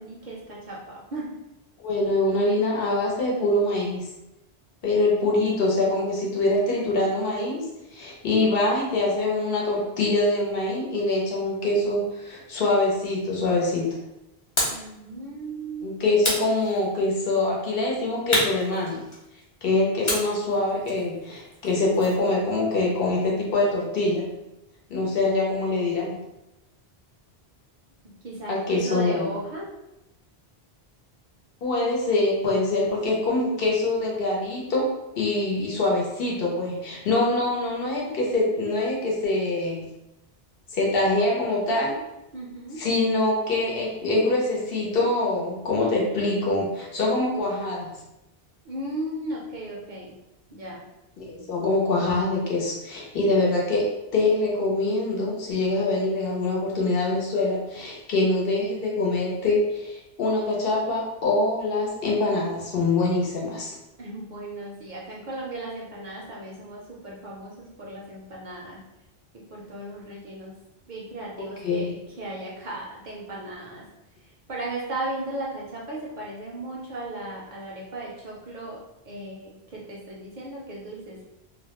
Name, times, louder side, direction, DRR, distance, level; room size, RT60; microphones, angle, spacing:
voice 1, 0.0-1.4 14.7-15.9 28.2-29.7 42.3-42.9 48.6-50.1 50.5-50.9 64.0-68.8 69.3-70.5 70.9-73.8 74.5-78.8 79.0-81.2, right 2 dB, 55° right, -3 dB, 0.6 m, -36 dB
voice 2, 1.8-4.1 4.8-7.6 7.9-14.0 15.8-19.0 19.6-24.3 24.9-26.2 28.5-29.2 31.6-34.9 35.2-39.9 40.7-41.9 42.8-47.9 51.2-53.9 54.1-63.7 71.4-71.9, left 2 dB, 65° left, -2 dB, 0.8 m, -24 dB
sound 1, 14.6-14.9 16.2-17.1 18.3-19.4 20.1-22.3, left 1 dB, 35° left, 0.6 m, -29 dB
2.2 x 2.0 x 2.9 m, 0.93 s
omnidirectional pair, 1.1 m